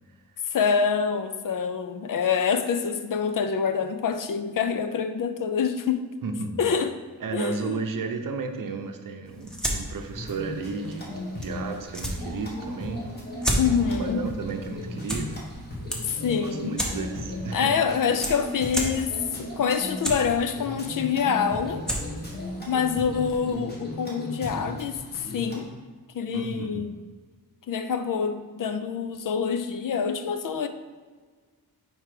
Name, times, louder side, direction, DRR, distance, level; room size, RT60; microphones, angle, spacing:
voice 1, 0.5-6.0 6.6-6.9 7.3-7.8 13.6-14.2 16.0-16.7 17.5-21.8 22.7-25.0 25.3-25.7 26.1-26.9 27.7-30.7, left 6 dB, 60° left, 9 dB, 0.5 m, -26 dB
voice 2, 6.2-6.6 7.2-13.1 13.6-15.4 16.3-17.8 26.3-26.8, right 4 dB, 60° right, 5 dB, 0.7 m, -33 dB
sound 1, 9.2-23.6, right 1 dB, ahead, 0.9 m, -35 dB
sound 2, 10.1-25.6, left 1 dB, 25° left, 1.4 m, -37 dB
4.7 x 4.4 x 4.9 m, 1.4 s
wide cardioid pair, 105°, 38 cm